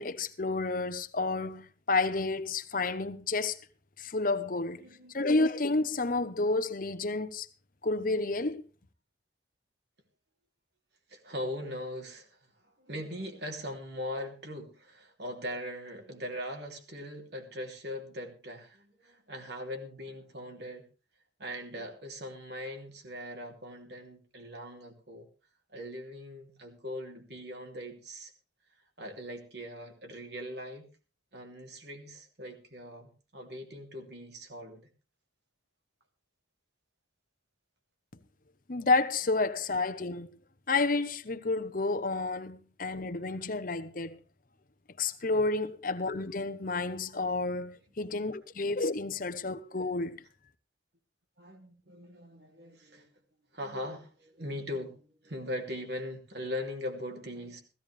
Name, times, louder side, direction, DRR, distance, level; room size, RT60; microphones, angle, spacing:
voice 1, 0.0-3.7 4.0-4.9 5.1-7.5 7.8-8.6 38.7-40.3 40.7-44.2 45.0-50.2, left 3 dB, 50° left, 0.9 m, -30 dB
voice 2, 4.8-5.2 11.1-20.9 21.4-25.3 25.7-28.3 29.0-30.9 31.3-34.9 48.0-48.2 51.4-53.1 53.5-57.6, left 1 dB, 60° right, 3.0 m, -40 dB
16.0 x 15.5 x 3.3 m
head